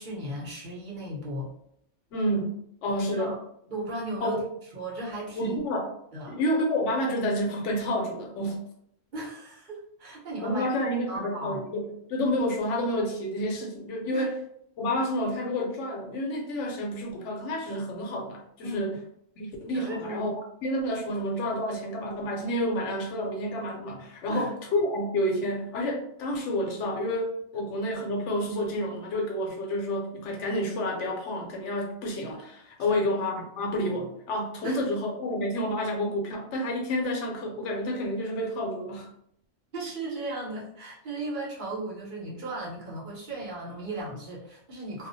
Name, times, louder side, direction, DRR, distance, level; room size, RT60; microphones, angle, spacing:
voice 1, 0.0-1.5 2.9-3.4 3.7-4.4 4.7-5.6 6.1-6.4 9.1-10.6 11.1-11.6 14.1-14.3 18.6-19.0 19.7-20.3 24.3-24.5 32.9-33.0 34.6-34.8 39.7-45.1, right 1 dB, 45° right, -4 dB, 0.8 m, -36 dB
voice 2, 2.1-3.4 4.2-4.4 5.3-5.9 6.3-8.7 10.4-14.4 14.8-19.0 19.4-20.3 20.6-39.1, left 1 dB, 75° left, 2 dB, 0.9 m, -29 dB
2.3 x 2.0 x 2.6 m, 0.71 s
omnidirectional pair, 1.2 m